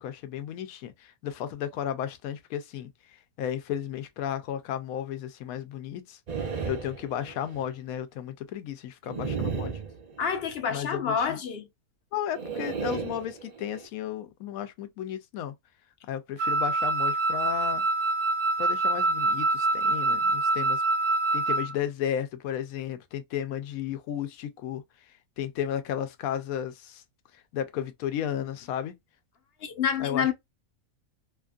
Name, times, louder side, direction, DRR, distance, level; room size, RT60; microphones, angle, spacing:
voice 1, 0.0-2.9 3.4-6.2 6.6-9.8 10.7-11.4 12.1-15.5 16.1-17.8 18.6-20.8 21.3-24.8 25.4-27.0 27.5-28.9 30.0-30.3, left 10 dB, 75° left, 1.0 m, -33 dB
sound 1, 6.3-7.6 9.1-10.6 12.3-13.9, right 6 dB, 50° right, 0.5 m, -34 dB
voice 2, 10.2-11.7 29.6-30.3, left 7 dB, 55° left, 0.8 m, -28 dB
Wind instrument woodwind instrument, 16.4-21.7, right 2 dB, 65° right, 0.9 m, -25 dB
2.9 x 2.5 x 2.3 m
omnidirectional pair, 1.5 m